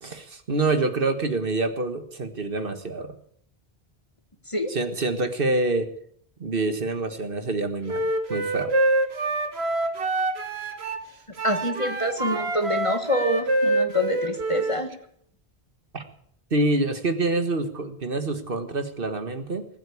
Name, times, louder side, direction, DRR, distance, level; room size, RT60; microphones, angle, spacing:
voice 1, 0.0-3.2 4.7-5.9 6.4-8.7 15.9-16.0 16.5-19.7, right 2 dB, 60° right, 8 dB, 1.7 m, -26 dB
Wind instrument woodwind instrument, 7.9-11.1 11.4-14.8, right 2 dB, 80° right, 1.9 m, -26 dB
voice 2, 11.4-14.9, left 1 dB, 30° left, 6 dB, 1.8 m, -26 dB
20.0 x 8.3 x 8.4 m, 0.66 s
omnidirectional pair, 1.1 m